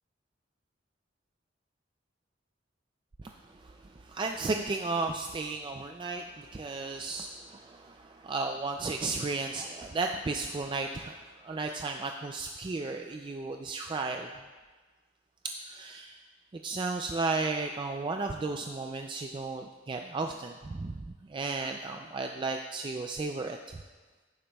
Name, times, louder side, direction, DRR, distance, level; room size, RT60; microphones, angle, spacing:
voice 1, 3.6-14.3 15.7-16.2 16.6-23.8, right 3 dB, 25° right, 3 dB, 0.3 m, -34 dB
15.0 x 7.0 x 2.3 m, 1.3 s
head